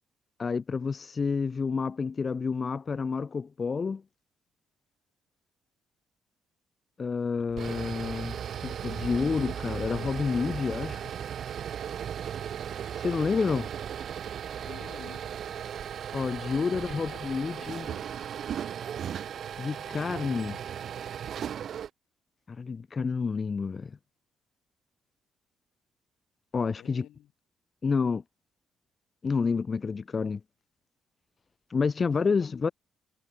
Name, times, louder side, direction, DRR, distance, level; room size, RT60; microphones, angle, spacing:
voice 1, 0.4-4.0 7.0-11.0 13.0-13.7 16.1-17.9 19.6-20.6 22.5-24.0 26.5-27.0 27.8-28.2 29.2-30.4 31.7-32.7, left 5 dB, 35° left, 0.7 m, -29 dB
sound 1, 7.4-21.9, right 9 dB, 60° right, 1.9 m, -36 dB
voice 2, 14.5-15.3 16.6-18.3 26.8-27.3 32.0-32.5, left 13 dB, 80° left, 5.9 m, -50 dB
cardioid pair, 90°, 0 cm